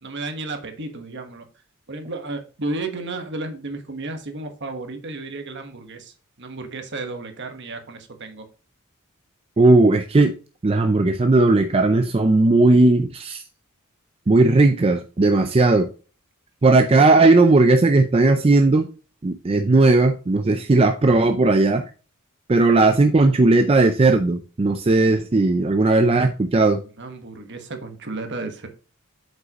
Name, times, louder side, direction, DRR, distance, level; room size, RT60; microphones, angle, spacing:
voice 1, 0.0-1.5 1.9-8.5 27.0-28.7, right 2 dB, 55° right, 1.3 m, -33 dB
voice 2, 9.6-10.3 10.6-13.4 14.3-15.9 16.6-18.9 19.2-21.8 22.5-26.8, right 2 dB, 25° right, 0.4 m, -16 dB
7.8 x 5.4 x 2.9 m
head